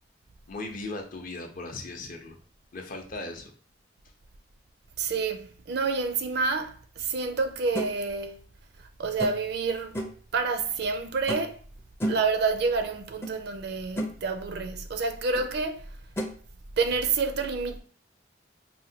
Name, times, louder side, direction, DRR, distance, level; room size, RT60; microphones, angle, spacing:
voice 1, 0.5-2.4 2.7-3.5 10.8-10.9, left 2 dB, 50° left, 0.6 m, -38 dB
voice 2, 5.0-8.4 9.0-10.0 10.3-11.6 12.0-15.9 16.8-17.8, right 4 dB, 65° right, 0.4 m, -28 dB
sound 1, 7.7-7.9 9.2-9.5 9.9-10.2 11.3-11.6 12.0-12.3 13.2-13.3 13.7-14.2 15.3-15.5 16.2-16.3, equal, 15° left, 0.4 m, -32 dB
4.3 x 2.1 x 2.7 m
head